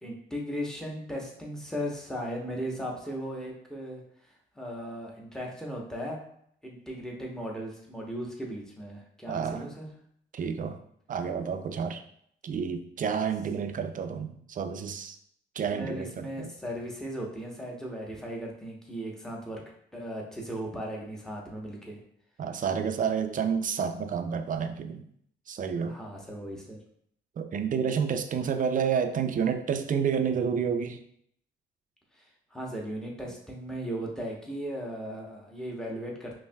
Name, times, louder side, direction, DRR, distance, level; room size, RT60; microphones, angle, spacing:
voice 1, 0.0-6.2 6.6-9.9 15.7-19.6 19.9-22.0 25.8-26.8 32.1-36.4, equal, 5° left, -2 dB, 1.0 m, -37 dB
voice 2, 9.3-9.6 10.3-10.8 11.1-12.0 12.4-15.2 15.6-16.5 22.4-25.1 25.5-26.0 27.4-31.0, right 7 dB, 45° right, 8 dB, 0.4 m, -29 dB
5.4 x 2.7 x 2.3 m, 0.67 s
cardioid pair, 90°, 20 cm